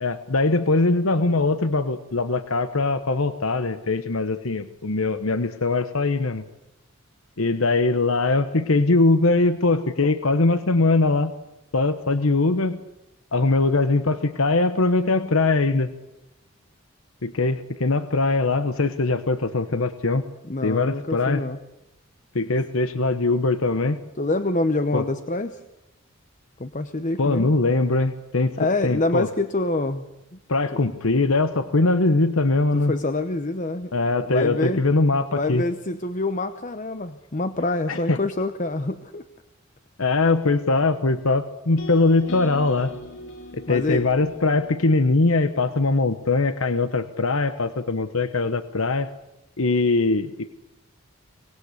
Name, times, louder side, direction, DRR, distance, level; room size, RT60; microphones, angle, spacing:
voice 1, 0.0-6.4 7.4-11.3 11.7-12.8 13.3-15.9 17.2-20.2 20.6-21.4 22.3-24.0 24.9-25.0 27.2-29.3 30.5-32.9 33.9-35.6 37.9-38.2 40.0-42.9 43.5-49.1 49.6-50.5, left 3 dB, 75° left, 11 dB, 1.1 m, -21 dB
voice 2, 20.4-21.6 24.2-25.6 26.6-27.5 28.6-30.4 30.7-30.8 32.7-33.9 34.2-34.8 35.3-39.2 43.7-44.1, left 2 dB, 35° left, 10 dB, 0.9 m, -26 dB
sound 1, 41.8-45.9, left 1 dB, 55° left, 3.8 m, -41 dB
25.0 x 19.5 x 8.4 m, 0.92 s
head